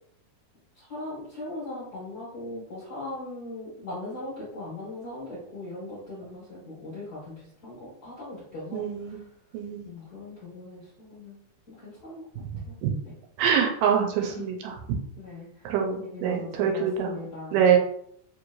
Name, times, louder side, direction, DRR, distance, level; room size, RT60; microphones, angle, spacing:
voice 1, 0.7-9.2 9.8-11.4 11.7-12.2 12.6-12.7 13.0-13.1 14.2-14.5 15.2-15.6 16.0-17.6, left 2 dB, 40° left, -10 dB, 1.5 m, -39 dB
voice 2, 8.7-9.2 9.5-9.9 12.8-12.9 13.4-14.7 15.7-17.2 17.5-17.8, right 8 dB, 90° right, 2 dB, 2.2 m, -24 dB
5.0 x 3.1 x 2.5 m, 0.68 s
omnidirectional pair, 3.8 m